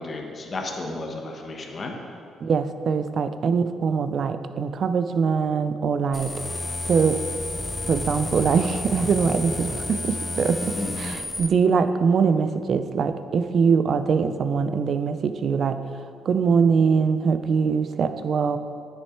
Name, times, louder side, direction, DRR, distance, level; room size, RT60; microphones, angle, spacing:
voice 1, 0.0-1.9 10.7-11.0, left 2 dB, 40° left, 2 dB, 1.1 m, -33 dB
voice 2, 2.4-6.3 6.9-7.2 7.9-18.6, right 5 dB, 55° right, 11 dB, 0.5 m, -23 dB
sound 1, 6.1-11.5, left 2 dB, 15° left, 0.5 m, -31 dB
9.8 x 6.2 x 4.5 m, 2.4 s
cardioid pair, 90°, 0 cm